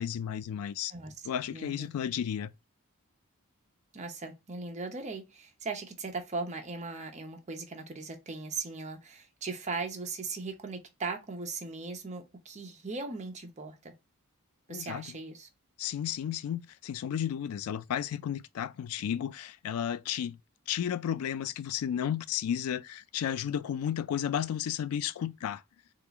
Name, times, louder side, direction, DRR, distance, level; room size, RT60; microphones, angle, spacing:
voice 1, 0.0-0.9 1.3-2.5 14.7-15.1 15.8-20.4 20.7-25.6, left 9 dB, 80° left, 0.3 m, -33 dB
voice 2, 1.5-1.9 3.9-13.9 14.7-15.5, right 3 dB, 35° right, 0.7 m, -38 dB
3.8 x 2.4 x 2.8 m
head